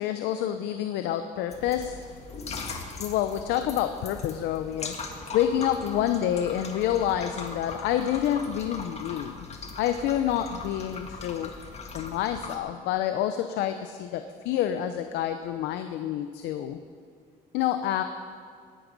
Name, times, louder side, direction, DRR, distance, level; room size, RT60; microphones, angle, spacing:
voice 1, 0.0-2.1 3.0-9.5 9.8-11.5 11.9-16.8 17.5-18.0, left 10 dB, 90° left, 8 dB, 0.7 m, -28 dB
Water dripping slowly, 1.5-12.6, left 4 dB, 40° left, 1.8 m, -40 dB
18.0 x 11.0 x 5.3 m, 2.2 s
cardioid pair, 110°, 17 cm